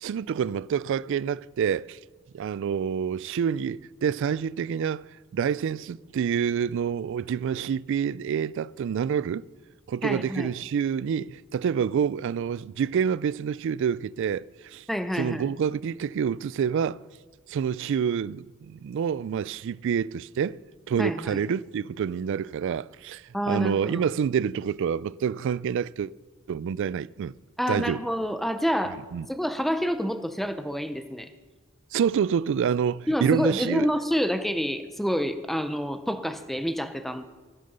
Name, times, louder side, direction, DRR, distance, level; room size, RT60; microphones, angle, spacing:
voice 1, 0.0-2.0 2.3-5.1 5.3-9.4 9.9-14.4 14.7-14.8 15.2-17.0 17.5-20.6 20.9-26.1 26.5-27.3 27.7-28.0 29.1-29.3 31.9-33.9, right 7 dB, 65° right, 0.3 m, -27 dB
voice 2, 10.0-10.5 14.9-15.5 21.0-21.4 23.3-24.0 27.6-29.0 29.3-31.3 33.1-37.2, equal, ahead, 0.5 m, -28 dB
16.5 x 6.7 x 5.4 m
head